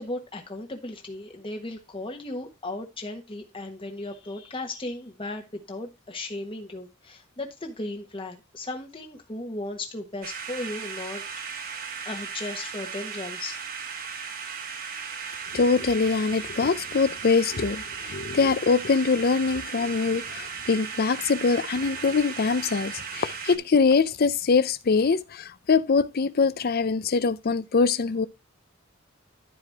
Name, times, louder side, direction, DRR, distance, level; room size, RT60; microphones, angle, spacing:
voice 1, 0.0-11.2 11.5-13.7, left 2 dB, 25° left, 1.3 m, -36 dB
sound 1, 10.2-23.6, right 6 dB, 45° right, 1.2 m, -36 dB
voice 2, 15.5-28.3, left 4 dB, 50° left, 0.5 m, -23 dB
11.5 x 4.9 x 3.5 m
head